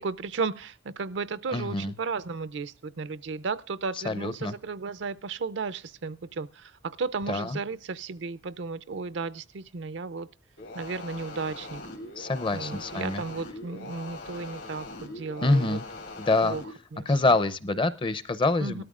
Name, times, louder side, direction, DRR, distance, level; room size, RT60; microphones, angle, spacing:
voice 1, 0.0-10.3 10.7-11.8 12.5-15.8 16.4-16.6 16.9-17.1 18.6-18.8, right 4 dB, 75° right, 0.5 m, -34 dB
voice 2, 1.5-1.9 4.0-4.6 7.3-7.6 12.2-13.2 15.4-15.9 16.2-16.6 17.1-18.8, left 2 dB, 25° left, 0.5 m, -26 dB
sound 1, 10.6-16.7, left 2 dB, 80° left, 2.9 m, -41 dB
19.0 x 13.0 x 2.4 m
head